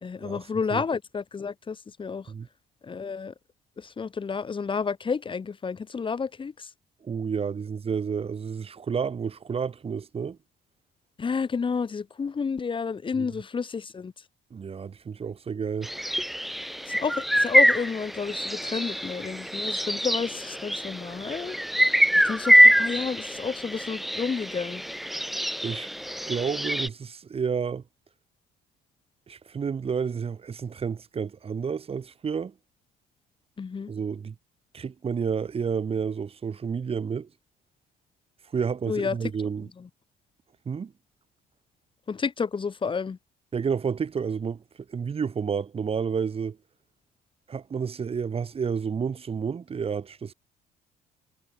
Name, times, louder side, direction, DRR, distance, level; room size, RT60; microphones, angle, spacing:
voice 1, 0.0-2.3 2.8-3.3 3.8-6.7 11.2-14.1 16.9-21.6 22.1-24.8 33.6-33.9 38.9-39.2 39.8-39.9 42.1-43.2, left 5 dB, 30° left, 3.1 m, -30 dB
voice 2, 7.0-10.4 13.2-13.3 14.5-15.9 25.6-25.9 26.3-27.8 29.3-32.5 33.9-34.4 34.7-37.3 38.5-39.7 40.7-40.9 43.5-44.6 44.9-46.6 47.5-50.3, right 6 dB, 35° right, 3.7 m, -30 dB
sound 1, 15.8-26.9, equal, ahead, 0.6 m, -24 dB
cardioid pair, 110°, 17 cm